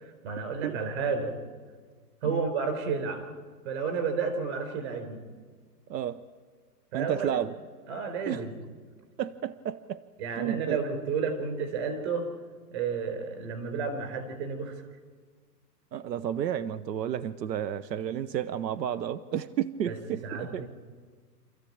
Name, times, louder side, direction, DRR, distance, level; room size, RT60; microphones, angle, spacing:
voice 1, 0.2-1.3 2.2-3.2 3.6-5.2 6.9-7.4 7.9-8.5 10.2-12.3 12.7-14.8 19.9-20.0 20.2-20.7, right 5 dB, 40° right, 7 dB, 4.4 m, -31 dB
voice 2, 5.9-6.3 6.9-7.5 8.3-8.5 9.2-10.0 10.3-10.8 15.9-20.6, right 10 dB, 90° right, 15 dB, 0.9 m, -32 dB
27.5 x 14.0 x 8.7 m, 1.5 s
hypercardioid pair, 165°, 49 cm